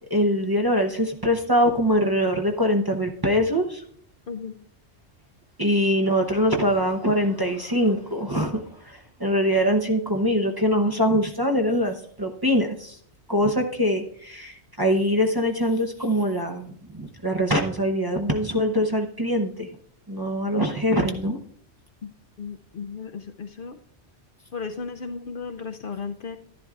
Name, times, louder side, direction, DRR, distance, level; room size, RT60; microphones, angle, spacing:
voice 1, 0.1-3.8 5.6-13.0 13.3-19.7 20.1-21.4, equal, 25° right, 2 dB, 0.7 m, -23 dB
voice 2, 4.3-4.6 22.0-22.1 22.4-23.8 24.5-26.4, left 5 dB, 60° left, 5 dB, 0.7 m, -35 dB
11.5 x 11.0 x 2.4 m, 0.62 s
omnidirectional pair, 1.2 m